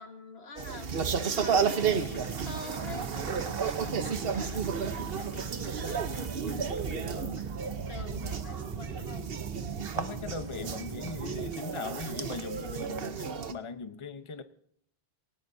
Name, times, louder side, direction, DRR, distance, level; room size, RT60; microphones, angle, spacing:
voice 1, 0.0-9.3, left 3 dB, 90° left, 6 dB, 2.0 m, -47 dB
sound 1, 0.6-13.5, right 6 dB, 65° right, 1.2 m, -33 dB
Applause / Crowd, 0.8-8.0, left 1 dB, 10° left, 3.8 m, -55 dB
sound 2, 1.8-11.5, right 6 dB, 40° right, 0.5 m, -40 dB
voice 2, 6.4-6.8 9.9-14.4, left 4 dB, 30° left, 10 dB, 0.9 m, -39 dB
19.5 x 18.5 x 2.7 m, 0.67 s
omnidirectional pair, 1.0 m